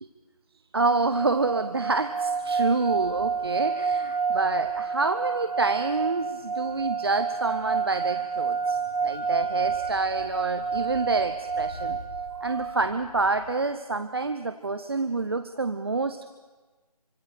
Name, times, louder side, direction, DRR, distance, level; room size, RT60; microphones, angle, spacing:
voice 1, 0.7-12.0 12.4-16.3, right 3 dB, 40° right, 10 dB, 0.8 m, -27 dB
sound 1, 0.8-12.1, right 3 dB, 20° right, 5.2 m, -56 dB
sound 2, 1.0-12.9, right 5 dB, 75° right, 1.5 m, -29 dB
sound 3, 2.9-13.5, left 2 dB, 65° left, 3.4 m, -49 dB
30.0 x 24.5 x 5.1 m, 1.3 s
figure-of-eight pair, 170°, 20 cm